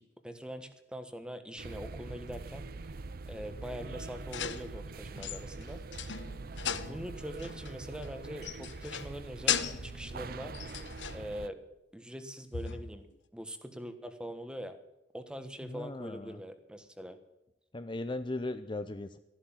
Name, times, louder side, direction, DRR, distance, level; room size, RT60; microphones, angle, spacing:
voice 1, 0.0-2.7 3.3-5.8 6.8-10.5 11.1-11.6 11.9-13.0 13.3-14.8 15.1-17.2, equal, 5° right, 9 dB, 1.3 m, -43 dB
sound 1, 1.6-11.5, right 3 dB, 55° right, 0.6 m, -43 dB
sound 2, 4.3-4.8 5.2-7.0 7.4-7.7 8.0-8.1 8.4-9.2 9.5-10.0 10.5-11.3 12.5-13.1, left 8 dB, 85° left, 1.0 m, -36 dB
voice 2, 6.6-7.0 15.6-16.4 17.7-19.2, left 2 dB, 25° left, 10 dB, 0.6 m, -38 dB
14.0 x 11.5 x 7.2 m, 0.94 s
head